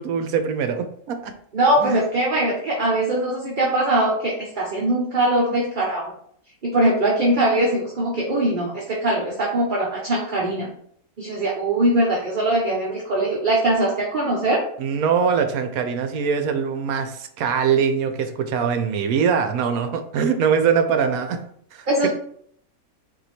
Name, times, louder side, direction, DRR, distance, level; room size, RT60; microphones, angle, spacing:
voice 1, 0.0-1.3 1.8-2.0 14.8-21.4 21.7-22.1, right 6 dB, 75° right, 7 dB, 1.0 m, -22 dB
voice 2, 1.5-6.1 6.6-10.7 11.2-14.6 21.9-22.1, right 1 dB, 40° right, -3 dB, 0.8 m, -21 dB
4.5 x 2.7 x 4.2 m, 0.64 s
omnidirectional pair, 1.6 m